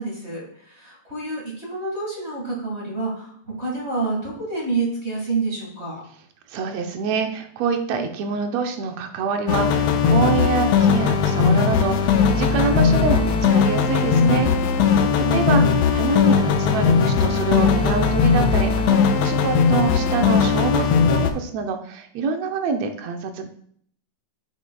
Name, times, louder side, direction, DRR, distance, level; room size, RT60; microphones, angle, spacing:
voice 1, 0.0-6.0 15.2-15.8, right 3 dB, 25° right, -3 dB, 1.7 m, -28 dB
voice 2, 6.5-14.5 14.9-15.6 15.9-23.5, right 5 dB, 70° right, 5 dB, 1.8 m, -26 dB
sound 1, 9.5-21.3, left 6 dB, 75° left, 1.7 m, -18 dB
8.6 x 7.3 x 2.3 m, 0.62 s
omnidirectional pair, 3.5 m